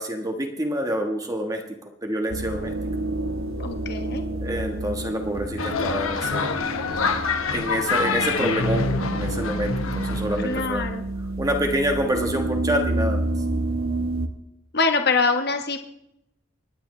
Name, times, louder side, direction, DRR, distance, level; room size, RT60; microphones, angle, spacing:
voice 1, 0.0-1.6 2.0-2.7 4.4-6.5 7.5-10.8 11.4-13.2, equal, 15° right, 3 dB, 1.4 m, -27 dB
sound 1, 2.3-14.3, right 2 dB, 85° right, 1.1 m, -29 dB
voice 2, 3.6-4.2 10.4-11.1 14.7-15.8, left 4 dB, 50° left, 6 dB, 1.2 m, -24 dB
sound 2, 5.6-10.7, left 4 dB, 90° left, 1.2 m, -26 dB
28.0 x 10.0 x 3.2 m, 0.80 s
head